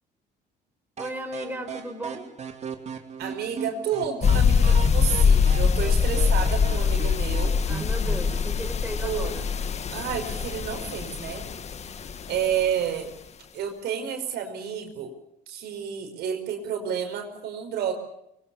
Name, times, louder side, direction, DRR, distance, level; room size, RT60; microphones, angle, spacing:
voice 1, 1.0-2.3 7.7-9.5, right 1 dB, 10° right, 4 dB, 4.2 m, -35 dB
sound 1, 1.0-8.5, right 6 dB, 40° right, 2.7 m, -38 dB
voice 2, 3.2-7.6 9.0-9.3 9.9-11.5 12.3-13.1 13.5-15.1 15.5-17.9, right 8 dB, 75° right, 5 dB, 5.1 m, -30 dB
sound 2, 4.2-12.6, left 6 dB, 40° left, 1.7 m, -23 dB
25.0 x 22.5 x 7.1 m, 0.79 s
cardioid pair, 110°, 17 cm